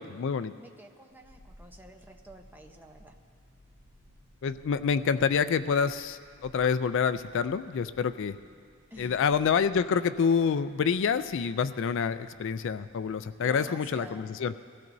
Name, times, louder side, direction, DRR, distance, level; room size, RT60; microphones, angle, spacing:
voice 1, 0.0-0.5 4.4-8.4 9.0-14.5, left 6 dB, 60° left, 12 dB, 0.4 m, -27 dB
voice 2, 0.6-3.2 8.9-9.2 13.4-14.3, right 1 dB, 10° right, 3 dB, 0.8 m, -49 dB
sound 1, 1.1-13.5 13.7-13.8, equal, 10° left, 3.2 m, -58 dB
23.0 x 16.5 x 2.7 m, 2.1 s
head